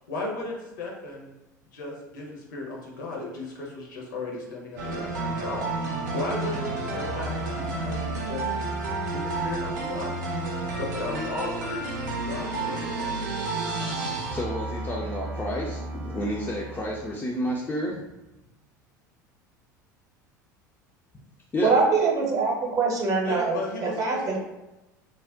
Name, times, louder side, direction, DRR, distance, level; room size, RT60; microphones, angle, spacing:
voice 1, 0.1-1.3 1.7-8.5 9.0-10.2 10.6-13.3 23.2-24.4, left 2 dB, 70° left, -2 dB, 0.8 m, -35 dB
sound 1, 4.8-17.1, right 2 dB, 70° right, 0.5 m, -31 dB
voice 2, 14.3-18.1 21.5-21.7, equal, 15° left, -3 dB, 0.4 m, -30 dB
voice 3, 21.6-24.4, right 4 dB, 35° right, -1 dB, 0.8 m, -24 dB
2.4 x 2.1 x 3.5 m, 1.0 s
figure-of-eight pair, 75°, 10 cm